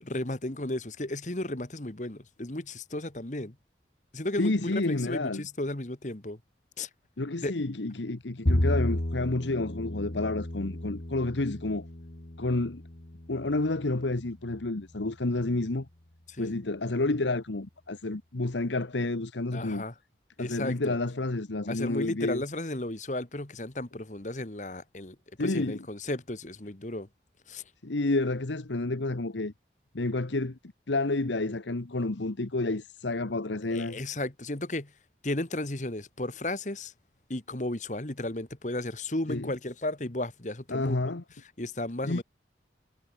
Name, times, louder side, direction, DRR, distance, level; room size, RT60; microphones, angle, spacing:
voice 1, 0.0-3.5 4.1-6.4 6.8-6.9 7.4-7.5 16.4-16.5 19.5-19.9 20.4-20.9 21.7-27.1 27.5-27.6 33.7-34.9 35.2-36.9 37.3-40.9 41.6-42.2, left 1 dB, 40° left, 1.6 m, -34 dB
voice 2, 4.4-5.5 7.2-11.9 12.4-12.8 13.3-15.9 16.4-19.8 20.4-22.4 25.4-25.9 27.8-29.5 29.9-30.6 30.9-34.0 39.3-39.5 40.7-41.2 42.0-42.2, left 2 dB, 90° left, 1.2 m, -30 dB
Bowed string instrument, 8.5-14.8, left 1 dB, 60° left, 2.3 m, -33 dB
head